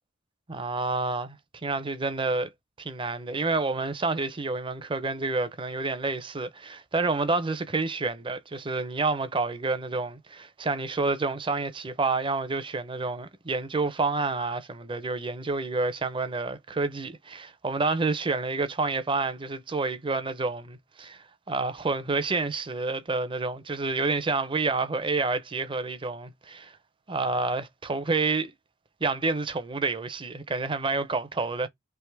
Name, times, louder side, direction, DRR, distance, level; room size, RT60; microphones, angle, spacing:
voice 1, 0.5-2.5 2.8-26.8 27.1-28.5 29.0-31.7, right 3 dB, 25° right, 0.6 m, -29 dB
3.5 x 2.9 x 4.5 m
head